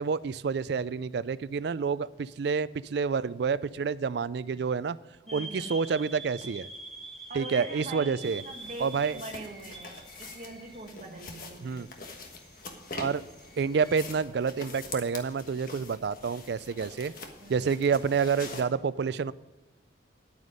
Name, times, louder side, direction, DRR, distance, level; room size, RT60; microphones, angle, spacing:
voice 1, 0.0-5.0 5.3-6.7 7.3-8.4 8.8-9.2 11.6-11.9 12.9-13.2 13.6-17.1 17.5-19.3, right 5 dB, 60° right, 0.4 m, -28 dB
sound 1, 5.3-14.1, right 2 dB, ahead, 1.8 m, -46 dB
voice 2, 5.3-5.9 7.3-11.9 17.4-17.6, right 2 dB, 40° right, 1.4 m, -43 dB
sound 2, 5.8-5.9 6.4-6.5 8.2-18.6, left 3 dB, 45° left, 1.4 m, -45 dB
9.8 x 9.4 x 5.0 m
head